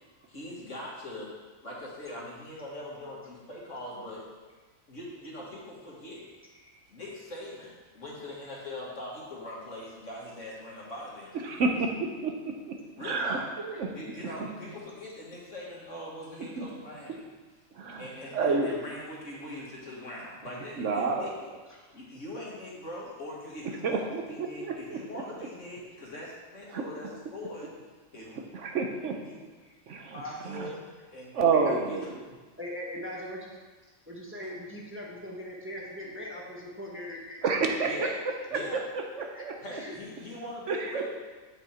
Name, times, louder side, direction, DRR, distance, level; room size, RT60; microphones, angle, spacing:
voice 1, 0.3-1.3 1.6-4.2 4.9-6.2 6.9-11.7 13.0-13.5 13.9-17.2 18.0-21.5 21.9-27.7 28.1-28.4 29.3-29.5 30.1-30.8 31.1-31.3 31.7-32.0 37.8-38.1 38.5-38.8 39.6-41.1, left 1 dB, 65° left, -4 dB, 2.1 m, -41 dB
voice 2, 11.4-12.5 13.0-13.9 16.6-16.7 17.8-18.1 18.3-18.8 20.8-21.3 23.8-24.2 24.6-25.0 26.7-26.8 28.5-29.1 29.9-30.7 31.3-32.2 37.4-37.9 39.2-39.5 40.7-41.0, right 4 dB, 65° right, 2 dB, 1.1 m, -29 dB
voice 3, 32.6-33.6 34.1-38.1 39.3-39.4 39.7-39.9, left 1 dB, 10° right, -3 dB, 1.1 m, -40 dB
8.1 x 5.8 x 4.4 m, 1.3 s
omnidirectional pair, 1.4 m